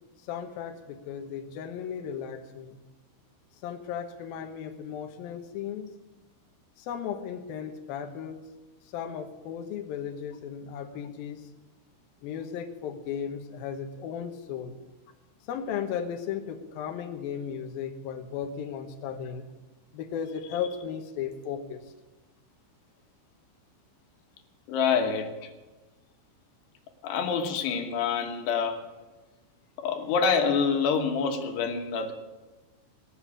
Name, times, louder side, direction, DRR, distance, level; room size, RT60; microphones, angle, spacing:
voice 1, 0.3-2.8 3.6-5.9 6.8-8.4 8.9-11.5 12.2-14.8 15.4-19.5 19.9-21.9, left 8 dB, 85° left, 2.0 m, -35 dB
voice 2, 24.7-25.5 27.0-28.8 29.8-32.1, left 6 dB, 65° left, 3.1 m, -26 dB
20.0 x 7.5 x 8.4 m
omnidirectional pair, 6.0 m